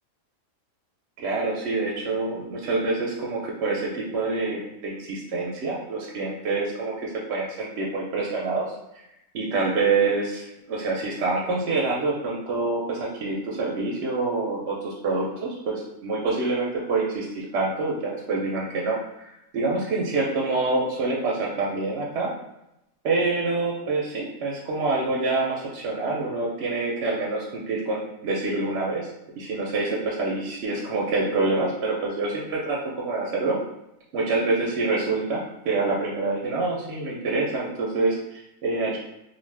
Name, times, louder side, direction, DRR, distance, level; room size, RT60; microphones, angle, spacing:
voice 1, 1.2-8.7 9.3-19.0 19.5-22.3 23.0-29.1 29.4-32.8 33.0-33.6 34.1-39.0, right 3 dB, 65° right, -2 dB, 0.7 m, -26 dB
2.6 x 2.4 x 3.2 m, 0.87 s
omnidirectional pair, 1.4 m